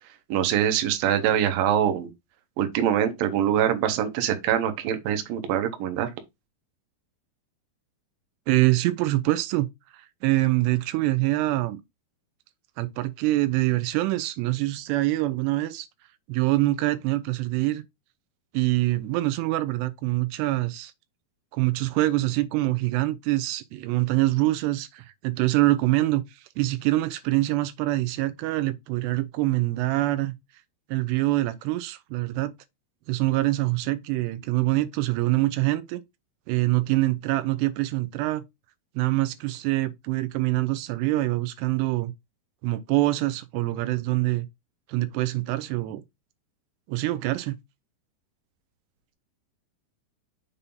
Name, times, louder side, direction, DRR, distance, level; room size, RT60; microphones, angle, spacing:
voice 1, 0.3-2.1 2.6-6.1, right 10 dB, 70° right, 2.4 m, -24 dB
voice 2, 8.5-9.7 9.9-11.8 12.8-15.9 16.3-17.8 18.5-20.9 21.5-30.3 30.9-32.5 33.1-36.0 36.5-38.4 39.0-42.1 42.6-44.5 44.9-46.0 46.9-47.6, right 18 dB, 85° right, 2.7 m, -25 dB
7.0 x 2.8 x 5.2 m
omnidirectional pair, 4.8 m